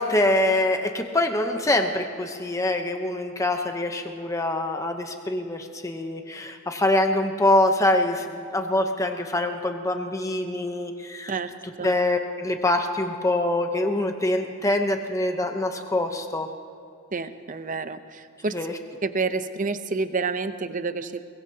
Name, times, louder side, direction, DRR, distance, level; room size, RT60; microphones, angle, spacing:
voice 1, 0.0-11.3 11.8-16.5 18.5-18.7, left 1 dB, 15° left, 5 dB, 0.8 m, -24 dB
voice 2, 17.1-18.5 19.0-21.2, right 4 dB, 35° right, 10 dB, 0.6 m, -29 dB
22.5 x 21.5 x 2.8 m, 2.5 s
head